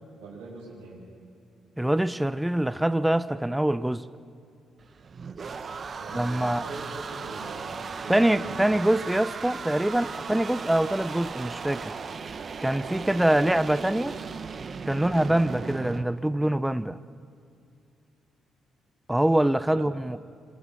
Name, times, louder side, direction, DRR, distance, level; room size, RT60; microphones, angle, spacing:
voice 1, 0.2-1.1 6.0-8.6 10.0-10.4 19.7-19.9, right 3 dB, 85° right, 6.9 m, -42 dB
voice 2, 1.8-4.1 6.1-6.6 8.1-11.9 12.6-14.2 14.9-17.0 19.1-20.2, right 1 dB, 10° right, 0.8 m, -24 dB
sound 1, 4.8-16.0, right 5 dB, 50° right, 1.2 m, -37 dB
26.0 x 24.0 x 5.8 m
hypercardioid pair, 45°, 0 cm